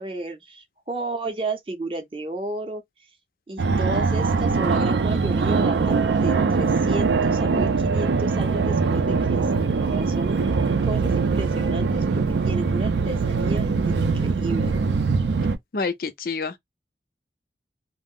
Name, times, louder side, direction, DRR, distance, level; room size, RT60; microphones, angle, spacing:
voice 1, 0.0-2.8 3.5-10.5 10.8-12.0 12.4-14.7, right 2 dB, 30° right, 0.6 m, -33 dB
Fixed-wing aircraft airplane, 3.6-15.6, right 4 dB, 80° right, 0.4 m, -22 dB
voice 2, 15.7-16.6, left 4 dB, 55° left, 0.5 m, -27 dB
2.5 x 2.0 x 3.5 m
head